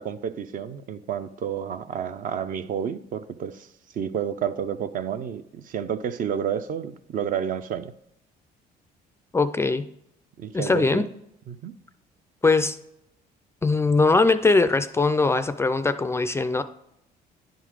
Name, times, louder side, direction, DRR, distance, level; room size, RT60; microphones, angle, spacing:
voice 1, 0.0-7.9 10.4-11.1 11.5-11.7, right 8 dB, 55° right, 11 dB, 0.6 m, -30 dB
voice 2, 9.3-9.9 10.5-11.0 12.4-12.8 13.6-16.6, left 3 dB, 15° left, 11 dB, 0.3 m, -21 dB
10.0 x 3.9 x 4.8 m, 0.79 s
cardioid pair, 110°, 17 cm